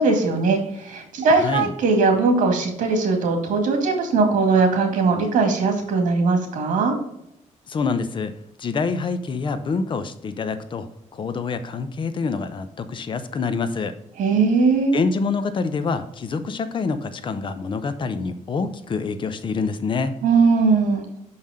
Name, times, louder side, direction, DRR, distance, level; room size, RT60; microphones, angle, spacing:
voice 1, 0.0-6.9 14.2-15.0 20.2-21.0, right 4 dB, 75° right, 4 dB, 2.1 m, -19 dB
voice 2, 1.3-1.7 7.7-8.3 8.6-13.9 14.9-20.2, left 4 dB, 40° left, 11 dB, 0.7 m, -26 dB
6.1 x 5.6 x 4.9 m, 0.79 s
cardioid pair, 140°, 13 cm